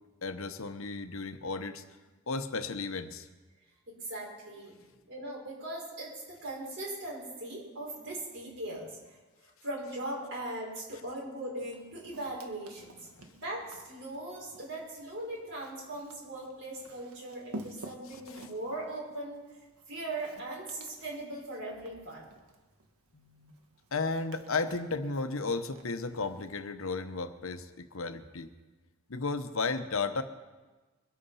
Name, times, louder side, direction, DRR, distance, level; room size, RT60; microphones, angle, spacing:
voice 1, 0.2-1.8 2.3-3.3 18.1-18.5 23.1-23.5 23.9-28.5 29.1-30.2, left 3 dB, 65° left, 9 dB, 0.9 m, -34 dB
voice 2, 3.9-4.7 5.1-9.2 9.6-13.0 13.2-19.4 19.9-22.2, right 1 dB, 55° right, -3 dB, 5.1 m, -39 dB
Walk footsteps, 11.6-26.6, right 1 dB, 85° right, 1.5 m, -52 dB
23.0 x 8.5 x 5.6 m, 1.2 s
head